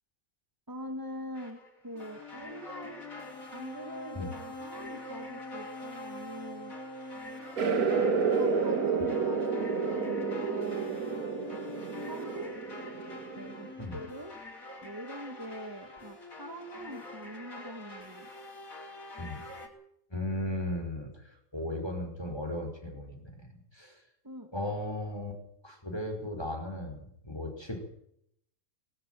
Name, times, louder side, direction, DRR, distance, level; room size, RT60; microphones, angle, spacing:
voice 1, 0.7-3.0 3.5-6.7 7.7-11.1 12.1-12.5 13.4-14.3 14.8-18.3 24.2-24.5, equal, 15° right, 5 dB, 2.0 m, -43 dB
sound 1, 1.4-19.7, left 2 dB, 65° left, 4.9 m, -44 dB
sound 2, 7.6-13.7, right 5 dB, 80° right, 2.2 m, -30 dB
voice 2, 20.1-24.0 24.5-27.8, left 1 dB, 15° left, 2 dB, 5.1 m, -36 dB
20.0 x 18.0 x 7.7 m, 0.74 s
omnidirectional pair, 1.5 m